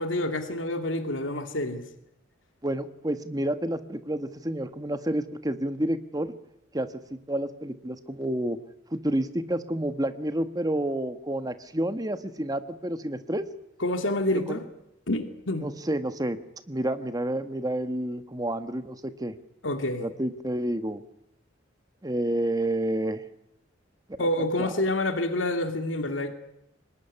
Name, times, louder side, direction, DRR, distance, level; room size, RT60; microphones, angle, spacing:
voice 1, 0.0-1.9 13.8-14.7 15.1-15.7 19.6-20.1 24.2-26.3, left 1 dB, 80° left, 2.5 m, -28 dB
voice 2, 2.6-6.3 6.7-8.6 8.9-13.4 14.3-14.6 15.6-16.4 16.7-19.4 20.0-21.0 22.0-23.2 24.6-24.7, right 1 dB, 20° right, 1.3 m, -29 dB
24.5 x 20.5 x 9.8 m
head